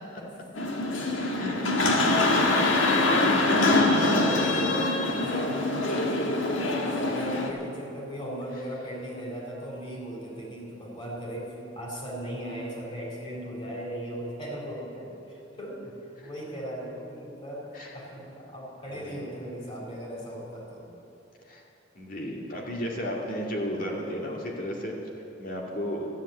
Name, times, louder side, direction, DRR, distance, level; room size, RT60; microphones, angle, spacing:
sound 1, 0.6-7.5, left 2 dB, 90° left, 1.5 m, -24 dB
voice 1, 1.3-3.1 8.5-8.6 16.2-16.3 17.7-18.0 18.9-19.2 21.5-21.6 21.9-24.9 25.4-26.1, equal, 45° left, -1 dB, 2.3 m, -34 dB
voice 2, 2.0-2.8 3.1-3.3 3.8-20.9, right 1 dB, 30° left, -4 dB, 4.0 m, -37 dB
13.0 x 10.5 x 8.4 m, 2.9 s
head